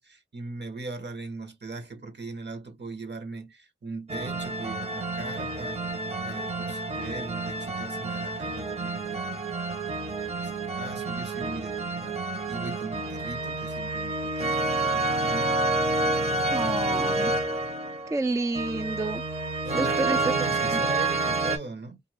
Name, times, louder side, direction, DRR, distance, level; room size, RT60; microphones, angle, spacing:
voice 1, 0.0-5.9 6.2-12.2 12.5-15.5 16.0-16.8 19.6-22.0, right 3 dB, 60° right, 1.0 m, -40 dB
sound 1, 4.1-21.6, right 2 dB, 30° right, 0.7 m, -29 dB
voice 2, 16.5-17.3 18.1-19.2 19.7-20.8, right 3 dB, 15° right, 0.3 m, -30 dB
2.5 x 2.3 x 3.2 m
cardioid pair, 40°, 21 cm